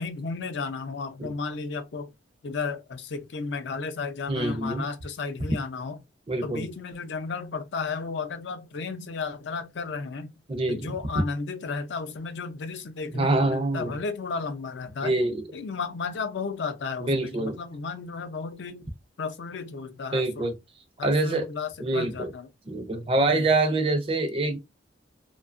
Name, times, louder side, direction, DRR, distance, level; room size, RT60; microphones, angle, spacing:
voice 1, 0.0-2.1 2.4-6.0 6.4-10.3 10.7-15.2 15.5-18.8 19.2-20.5 21.0-22.5 23.2-23.5, left 4 dB, 75° left, 0.4 m, -33 dB
voice 2, 4.3-4.8 6.3-6.6 10.5-10.9 13.1-13.9 15.0-15.4 17.0-17.6 20.1-20.5 21.0-21.5 21.8-22.3 22.7-24.6, right 2 dB, 30° right, 0.4 m, -25 dB
2.6 x 2.2 x 2.4 m
head